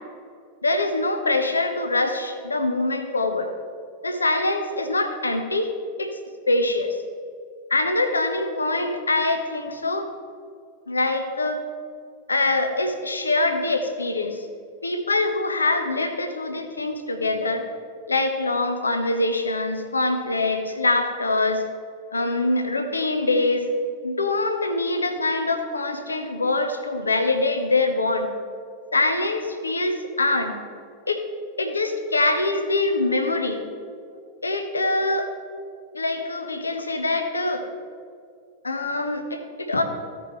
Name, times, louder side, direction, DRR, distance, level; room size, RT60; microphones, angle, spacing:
voice 1, 0.6-3.5 4.0-5.7 6.0-6.2 6.5-7.0 7.7-10.1 10.9-11.6 12.3-14.5 14.8-17.6 18.1-21.6 22.1-23.7 24.0-28.3 28.9-30.6 31.1-31.2 31.6-33.6 34.4-35.3 35.9-37.7 38.6-39.8, left 2 dB, 80° left, 7 dB, 0.9 m, -24 dB
15.5 x 5.3 x 3.2 m, 2.2 s
figure-of-eight pair, 90°, 0 cm